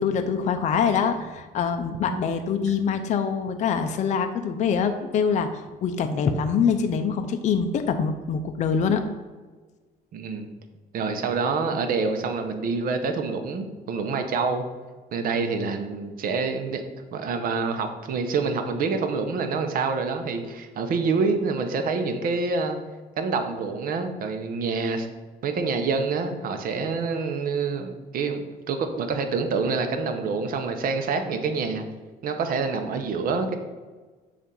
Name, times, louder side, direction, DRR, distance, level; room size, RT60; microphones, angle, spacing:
voice 1, 0.0-9.0, left 6 dB, 45° left, 7 dB, 0.5 m, -24 dB
voice 2, 10.1-10.5 10.9-14.6 15.1-16.8 17.1-22.8 23.2-25.1 25.4-31.8 32.2-33.6, right 4 dB, 60° right, 7 dB, 0.8 m, -27 dB
7.0 x 2.5 x 5.3 m, 1.4 s
cardioid pair, 110°, 17 cm